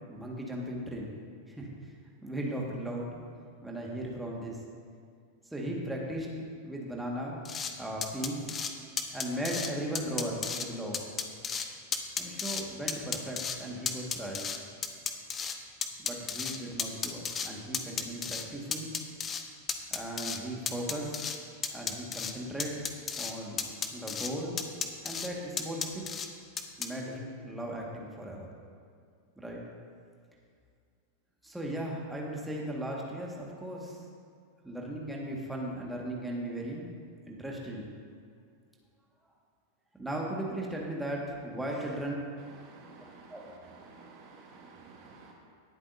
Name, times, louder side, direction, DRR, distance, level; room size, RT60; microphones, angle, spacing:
voice 1, 0.1-1.1 1.5-1.9 2.2-3.1 3.6-4.6 5.5-6.3 6.6-7.4 7.8-8.5 9.0-11.0 12.2-14.6 16.0-18.9 19.9-21.2 21.7-22.8 23.2-24.6 25.0-26.2 26.8-28.5 29.4-29.6 31.4-34.0 34.6-36.9 37.3-37.9 40.0-42.2 43.3-43.4, right 1 dB, 5° right, -3 dB, 1.9 m, -37 dB
sound 1, 7.4-7.7 8.0-8.7 9.0-9.7 9.9-10.7 10.9-11.7 11.9-12.6 12.9-13.6 13.8-15.6 15.8-17.5 17.7-18.4 18.7-19.4 19.7-20.4 20.7-21.4 21.6-22.3 22.6-23.3 23.6-24.3 24.6-25.3 25.6-26.3 26.6-26.9, left 6 dB, 25° left, 0.8 m, -33 dB
voice 2, 42.6-43.3 43.7-45.3, right 4 dB, 40° right, -1 dB, 1.5 m, -52 dB
18.5 x 8.1 x 2.8 m, 2.2 s
figure-of-eight pair, 90°, 0 cm